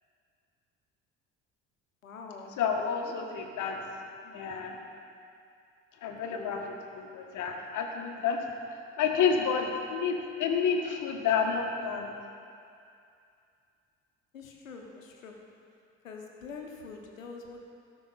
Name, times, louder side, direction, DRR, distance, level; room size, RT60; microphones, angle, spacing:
voice 1, 2.0-2.5 3.0-3.1 6.3-6.5 14.3-15.4 16.0-17.6, left 4 dB, 80° left, 1 dB, 1.2 m, -44 dB
voice 2, 2.6-3.8 4.3-4.8 6.0-6.6 6.9-8.4 9.0-12.1, left 6 dB, 50° left, 3 dB, 1.5 m, -29 dB
17.5 x 6.0 x 4.1 m, 2.4 s
figure-of-eight pair, 55°, 39 cm